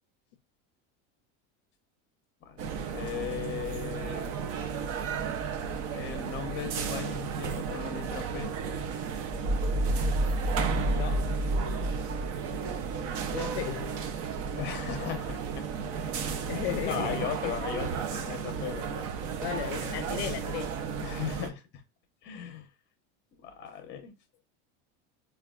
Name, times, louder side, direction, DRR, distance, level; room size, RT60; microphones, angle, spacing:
voice 1, 2.4-4.8 5.9-8.6 14.5-15.6 16.3-16.4 16.9-19.1 21.0-21.6 22.2-22.7 23.4-24.1, left 9 dB, 30° left, 0.7 m, -37 dB
sound 1, 2.6-21.5, right 6 dB, 40° right, 0.5 m, -34 dB
sound 2, 9.4-13.6, equal, 65° right, 0.8 m, -29 dB
voice 2, 10.8-11.3 13.3-13.9 15.8-15.9 16.5-17.6 19.4-20.8, left 12 dB, 65° left, 0.5 m, -35 dB
4.5 x 2.3 x 2.3 m
supercardioid pair, 155°, 36 cm